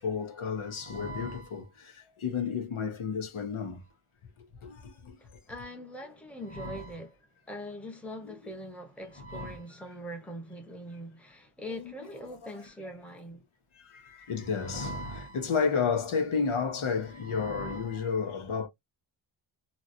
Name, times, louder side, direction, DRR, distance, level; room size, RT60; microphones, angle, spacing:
voice 1, 0.0-3.8 4.4-5.2 6.5-6.9 8.2-8.3 9.1-9.6 11.6-12.1 13.7-18.7, left 5 dB, 80° left, 1.0 m, -32 dB
voice 2, 5.2-7.1 7.5-13.4, equal, 5° left, 0.9 m, -42 dB
3.1 x 2.8 x 2.5 m
wide cardioid pair, 130°, 49 cm